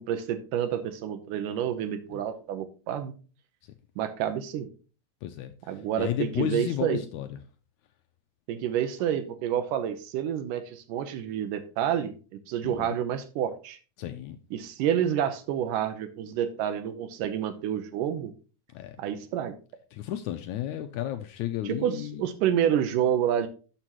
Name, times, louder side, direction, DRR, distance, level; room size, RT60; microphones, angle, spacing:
voice 1, 0.0-3.1 4.0-4.7 5.7-7.0 8.5-13.8 14.5-18.3 19.0-19.6 21.7-23.5, right 9 dB, 80° right, 2.4 m, -29 dB
voice 2, 5.2-7.4 12.6-13.0 14.0-14.4 18.7-19.0 19.9-22.3, left 12 dB, 80° left, 1.8 m, -33 dB
12.5 x 6.8 x 3.0 m
omnidirectional pair, 3.9 m